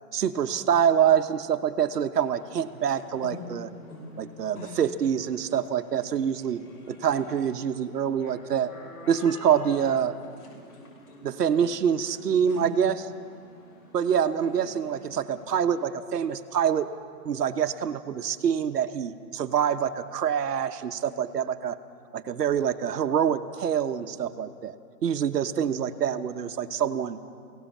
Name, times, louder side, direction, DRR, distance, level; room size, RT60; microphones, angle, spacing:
voice 1, 0.1-3.7 4.2-6.6 6.9-8.7 9.1-10.1 11.2-13.1 13.9-16.9 17.2-21.8 22.1-24.7 25.0-27.2, right 8 dB, 80° right, 10 dB, 1.2 m, -26 dB
sound 1, 2.1-15.9, left 2 dB, 70° left, 6.4 m, -46 dB
23.5 x 17.5 x 7.3 m, 2.4 s
hypercardioid pair, 175°, 47 cm